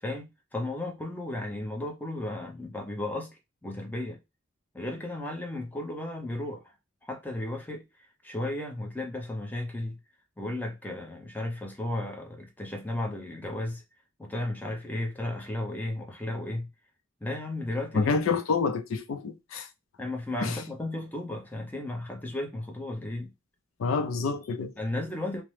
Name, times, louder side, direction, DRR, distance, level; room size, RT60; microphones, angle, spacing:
voice 1, 0.0-4.2 4.7-6.6 7.1-10.0 10.4-13.8 14.2-16.7 17.2-18.1 20.0-23.3 24.8-25.4, left 1 dB, 10° left, 0.6 m, -34 dB
voice 2, 17.9-19.7 20.4-20.6 23.8-24.7, left 4 dB, 70° left, 0.4 m, -28 dB
2.8 x 2.0 x 3.1 m
head